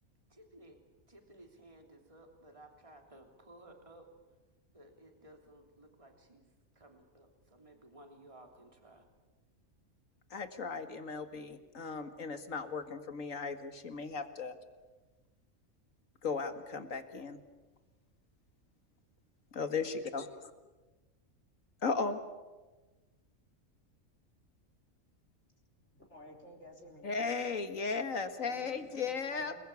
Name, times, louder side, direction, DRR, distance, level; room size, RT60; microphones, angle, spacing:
voice 1, 0.3-0.8 1.1-4.1 4.7-6.5 6.8-9.1, right 1 dB, 25° right, 3 dB, 3.3 m, -57 dB
voice 2, 10.3-14.5 16.2-17.4 19.6-20.5 21.8-22.2 27.0-29.5, left 4 dB, 75° left, 8 dB, 2.3 m, -36 dB
voice 3, 25.8-27.1 28.4-29.7, left 1 dB, 55° left, 1 dB, 4.4 m, -54 dB
29.5 x 20.5 x 8.5 m, 1.2 s
omnidirectional pair, 1.4 m